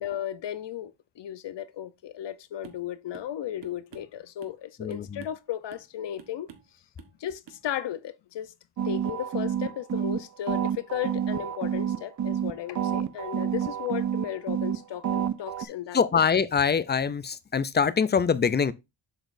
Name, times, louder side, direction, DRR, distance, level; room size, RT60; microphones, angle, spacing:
voice 1, 0.0-6.5 7.2-8.5 8.8-16.0, left 11 dB, 60° left, 0.7 m, -35 dB
sound 1, 2.6-2.9 3.1-3.3 3.6-4.6 4.9-5.4 5.7-5.9 6.2-6.7 7.0-7.2 7.5-7.6, right 8 dB, 65° right, 1.2 m, -49 dB
voice 2, 4.8-5.3 15.9-18.7, left 6 dB, 25° left, 0.3 m, -24 dB
sound 2, 8.8-10.2 10.5-12.5 12.8-14.8 15.0-15.7, right 9 dB, 40° right, 0.5 m, -28 dB
7.4 x 5.1 x 2.5 m
cardioid pair, 110°, 48 cm